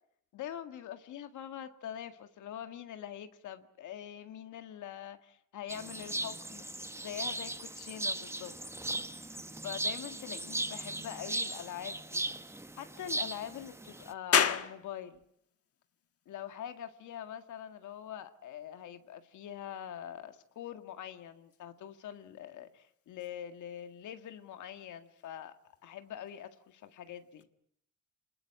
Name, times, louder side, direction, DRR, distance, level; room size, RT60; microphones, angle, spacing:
voice 1, 0.3-6.6 7.0-8.5 9.6-15.2 16.3-25.5 25.8-27.5, left 10 dB, 75° left, 8 dB, 1.9 m, -44 dB
sound 1, 5.7-14.1, right 2 dB, 10° right, 1.2 m, -38 dB
sound 2, 14.3-27.4, left 8 dB, 50° left, 1.6 m, -39 dB
26.0 x 21.0 x 8.7 m, 0.70 s
cardioid pair, 90°, 30 cm